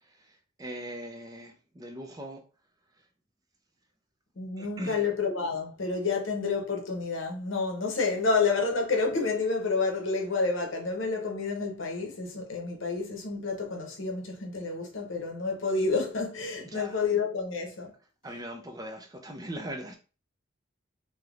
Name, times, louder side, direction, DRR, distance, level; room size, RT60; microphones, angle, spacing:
voice 1, 0.6-2.4 4.6-5.1 16.7-17.0 18.2-19.9, right 1 dB, 20° right, 0.4 m, -40 dB
voice 2, 4.4-17.9, left 4 dB, 75° left, 0.8 m, -29 dB
3.4 x 2.8 x 2.4 m
head